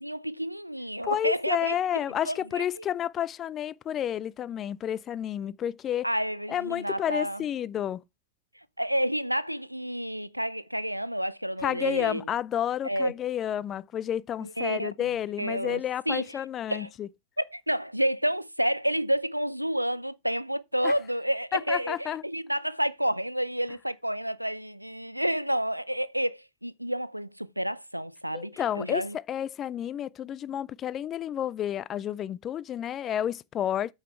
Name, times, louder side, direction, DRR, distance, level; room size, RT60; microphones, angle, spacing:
voice 1, 0.0-1.8 2.3-2.8 6.0-7.4 8.8-12.2 12.8-13.1 14.6-15.1 15.4-16.3 16.7-16.9 17.4-29.2, equal, 90° right, 0.5 m, -30 dB
voice 2, 1.0-6.1 6.5-8.0 11.6-17.1 20.8-20.9 21.5-22.2 28.3-33.9, left 10 dB, 30° left, 0.4 m, -30 dB
8.5 x 5.7 x 4.4 m
figure-of-eight pair, 90°, 0 cm